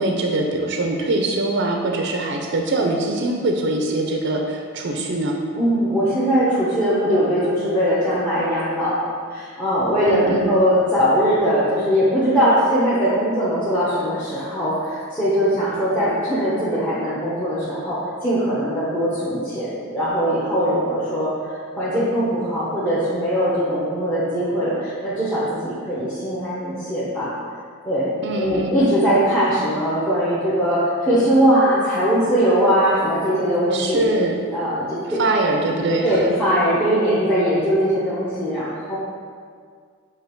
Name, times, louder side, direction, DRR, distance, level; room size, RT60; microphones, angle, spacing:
voice 1, 0.0-5.4 10.1-10.5 28.2-28.8 33.7-34.3 35.2-36.3, right 2 dB, 55° right, 2 dB, 0.5 m, -22 dB
voice 2, 5.6-27.3 27.8-34.1 34.5-35.2 36.0-39.0, equal, 10° left, -11 dB, 0.9 m, -20 dB
7.2 x 3.0 x 4.5 m, 2.1 s
head